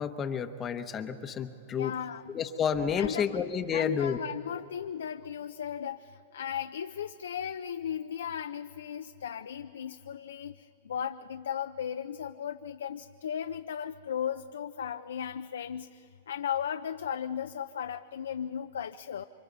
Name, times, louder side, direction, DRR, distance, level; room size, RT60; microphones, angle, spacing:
voice 1, 0.0-1.9 2.3-4.2, left 7 dB, 25° left, 8 dB, 0.9 m, -30 dB
voice 2, 1.7-2.3 3.0-3.4 3.7-19.2, left 8 dB, 85° left, 8 dB, 0.5 m, -36 dB
28.5 x 24.5 x 4.0 m, 2.6 s
hypercardioid pair, 125°, 0 cm